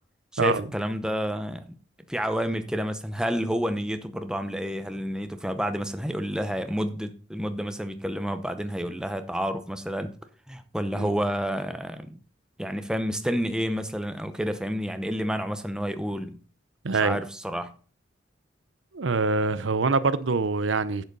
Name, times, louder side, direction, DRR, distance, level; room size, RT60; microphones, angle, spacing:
voice 1, 0.4-1.6 2.1-10.1 10.5-12.2 12.6-16.4 17.0-17.7, equal, 5° right, 0.8 m, -29 dB
voice 2, 16.8-17.2 18.9-21.0, right 4 dB, 80° right, 0.7 m, -24 dB
11.0 x 7.8 x 4.0 m
head